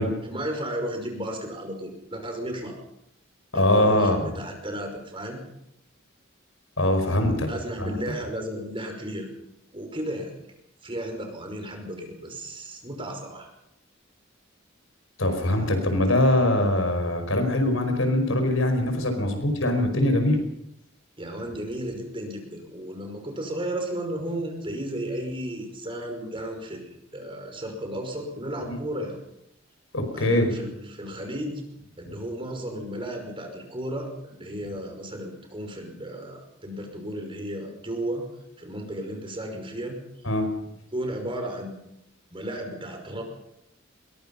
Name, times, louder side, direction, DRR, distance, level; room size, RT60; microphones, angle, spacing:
voice 1, 0.2-2.7 3.5-5.4 7.5-9.3 9.7-10.3 10.8-13.5 21.2-29.2 30.1-38.2 38.6-40.0 40.6-41.8 42.3-43.2, right 1 dB, 25° right, 3 dB, 5.7 m, -34 dB
voice 2, 3.5-4.2 6.8-7.5 7.8-8.0 15.2-20.4 28.6-28.7 29.9-30.5 40.2-40.5, left 1 dB, 80° left, 6 dB, 5.2 m, -22 dB
22.5 x 22.0 x 5.7 m, 0.79 s
head